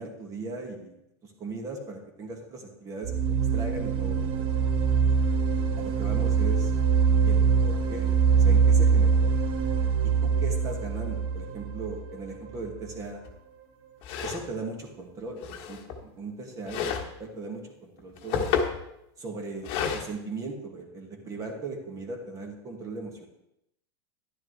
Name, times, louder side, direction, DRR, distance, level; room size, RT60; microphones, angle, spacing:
voice 1, 0.0-4.7 5.8-6.7 7.2-8.1 8.4-9.3 10.2-13.2 14.2-18.6 19.2-23.3, right 3 dB, 25° right, 2 dB, 1.8 m, -38 dB
sound 1, 3.0-12.8, right 6 dB, 40° right, 1.1 m, -23 dB
sound 2, 13.3-13.4 14.0-14.5 15.4-16.0 16.7-17.1 18.0-18.8 19.6-20.1, left 7 dB, 45° left, 1.4 m, -30 dB
11.0 x 10.5 x 3.3 m, 0.82 s
supercardioid pair, 140°, 14 cm